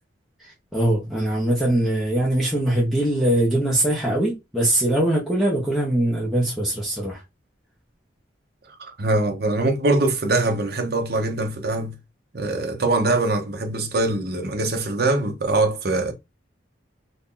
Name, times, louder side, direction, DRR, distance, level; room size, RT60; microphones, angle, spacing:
voice 1, 0.4-7.2, right 1 dB, ahead, 0.9 m, -22 dB
voice 2, 8.8-11.9 12.3-16.1, right 2 dB, 50° right, 0.7 m, -23 dB
2.9 x 2.6 x 3.7 m
head